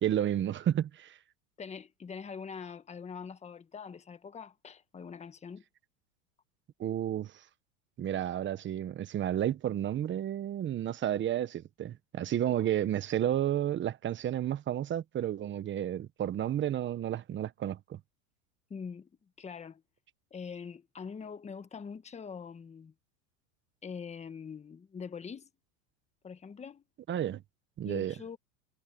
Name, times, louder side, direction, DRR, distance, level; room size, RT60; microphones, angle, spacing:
voice 1, 0.0-1.2 6.8-7.3 8.0-18.0 27.1-27.4 27.8-28.1, right 11 dB, 30° right, 1.2 m, -31 dB
voice 2, 1.6-5.6 18.7-19.1 19.4-19.8 20.3-22.9 23.8-25.5 26.2-26.8 27.8-28.4, left 6 dB, 15° left, 1.4 m, -43 dB
supercardioid pair, 125°, 40 cm